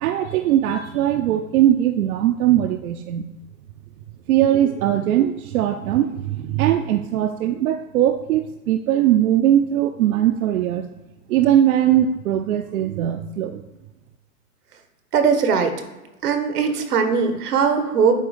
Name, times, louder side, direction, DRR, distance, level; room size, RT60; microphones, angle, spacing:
voice 1, 0.0-3.3 4.3-10.8 11.3-13.6, right 11 dB, 70° right, 6 dB, 0.6 m, -20 dB
voice 2, 15.1-15.8 16.2-18.2, right 6 dB, 85° right, 7 dB, 1.3 m, -20 dB
8.5 x 2.9 x 5.0 m, 1.1 s
hypercardioid pair, 135°, 45 cm